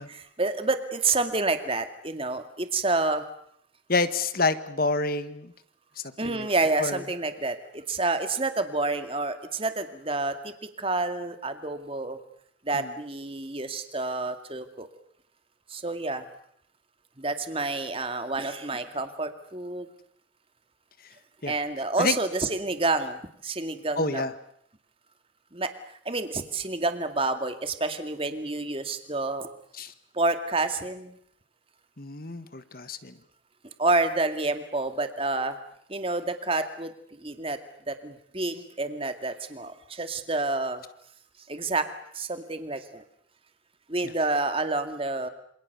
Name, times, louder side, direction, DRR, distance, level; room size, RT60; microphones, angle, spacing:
voice 1, 0.1-3.2 6.2-12.2 12.7-14.9 15.7-16.3 17.2-19.9 21.5-24.2 25.5-25.7 26.1-29.5 30.1-31.1 33.8-35.6 35.9-37.6 37.9-40.8 41.5-41.9 42.1-43.0 43.9-45.3, right 3 dB, 30° right, 8 dB, 2.2 m, -29 dB
voice 2, 3.9-5.5 6.2-6.5 6.8-7.0 12.7-12.9 21.4-21.5 22.0-22.2 24.0-24.3 29.8-29.9 32.0-33.1, left 3 dB, 50° left, 12 dB, 1.6 m, -28 dB
27.5 x 26.5 x 6.9 m, 0.67 s
head